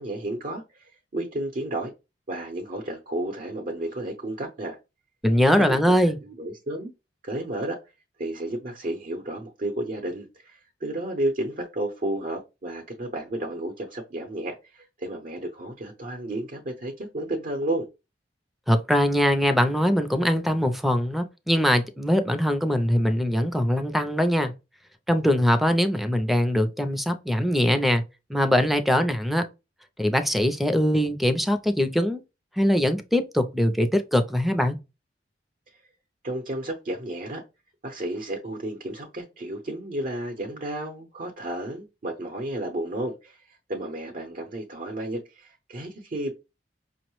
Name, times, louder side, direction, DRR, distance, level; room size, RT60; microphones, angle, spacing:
voice 1, 0.0-1.9 2.3-4.8 5.7-6.9 7.2-7.8 8.2-17.9 36.2-37.4 37.8-46.3, right 1 dB, 50° right, 0.7 m, -32 dB
voice 2, 5.2-6.2 18.7-24.5 25.1-28.0 28.3-29.5 30.0-32.2 32.6-34.8, equal, ahead, 0.4 m, -22 dB
5.3 x 2.0 x 3.0 m
head